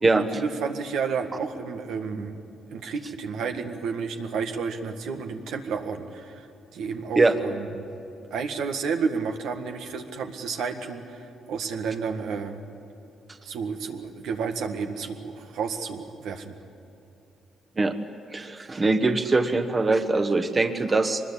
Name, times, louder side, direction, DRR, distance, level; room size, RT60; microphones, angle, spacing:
voice 1, 0.1-2.4 2.7-6.5 6.7-7.8 8.3-12.6 13.4-16.6, right 5 dB, 80° right, 4 dB, 1.8 m, -31 dB
voice 2, 18.3-21.2, right 3 dB, 30° right, 7 dB, 1.3 m, -22 dB
23.5 x 21.0 x 8.5 m, 2.8 s
cardioid pair, 90°, 0 cm